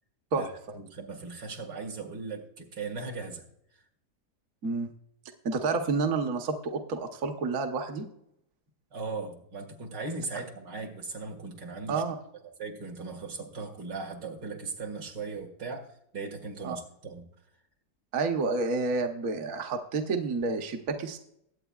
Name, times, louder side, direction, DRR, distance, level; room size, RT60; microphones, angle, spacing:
voice 1, 0.7-3.4 8.9-12.0 12.6-15.8 16.1-17.3, right 4 dB, 85° right, 1 dB, 2.5 m, -38 dB
voice 2, 5.4-8.1 11.9-12.1 16.6-16.8 18.1-21.2, right 4 dB, 55° right, 4 dB, 1.3 m, -29 dB
22.0 x 8.4 x 2.4 m, 0.76 s
omnidirectional pair, 1.9 m